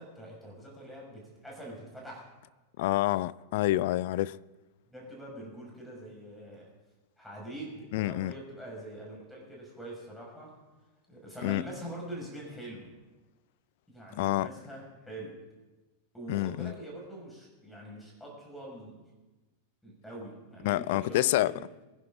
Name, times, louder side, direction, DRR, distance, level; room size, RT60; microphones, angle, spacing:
voice 1, 0.0-2.3 4.9-6.7 7.2-10.5 11.1-12.9 13.9-15.4 16.1-19.0 19.8-21.6, right 1 dB, 5° left, 5.7 m, -44 dB
voice 2, 2.8-4.4 7.9-8.3 11.4-11.6 14.2-14.5 16.3-16.7 20.6-21.5, left 16 dB, 50° left, 0.4 m, -27 dB
23.0 x 10.5 x 3.8 m
figure-of-eight pair, 90°, 0 cm